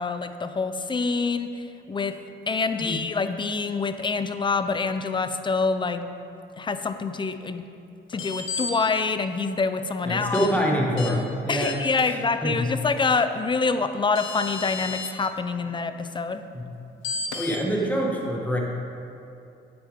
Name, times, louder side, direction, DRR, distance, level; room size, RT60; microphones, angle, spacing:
voice 1, 0.0-2.1 2.5-6.1 6.6-7.7 8.1-10.5 11.5-16.4, left 4 dB, 25° left, 10 dB, 0.5 m, -26 dB
sound 1, 8.1-8.7 10.3-10.5 11.0-11.1 11.6-12.0 13.7-13.8 14.1-15.1 17.0-17.6, left 4 dB, 85° left, 0.9 m, -32 dB
voice 2, 10.1-11.8 12.4-12.7 16.5-16.6 17.3-18.6, equal, 10° left, -2 dB, 1.7 m, -25 dB
9.1 x 8.8 x 3.6 m, 2.6 s
cardioid pair, 90°, 20 cm